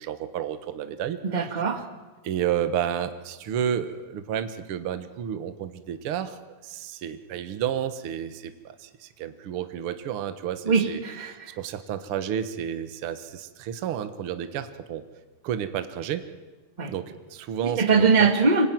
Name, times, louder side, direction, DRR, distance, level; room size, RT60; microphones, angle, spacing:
voice 1, 0.0-1.2 2.2-11.0 11.3-15.0 15.4-16.2 16.9-18.3, right 9 dB, 55° right, 9 dB, 1.7 m, -31 dB
voice 2, 1.2-1.9 10.6-11.6 16.8-16.9 17.6-18.7, right 4 dB, 20° right, 5 dB, 1.5 m, -22 dB
25.5 x 21.0 x 9.3 m, 1.3 s
omnidirectional pair, 3.9 m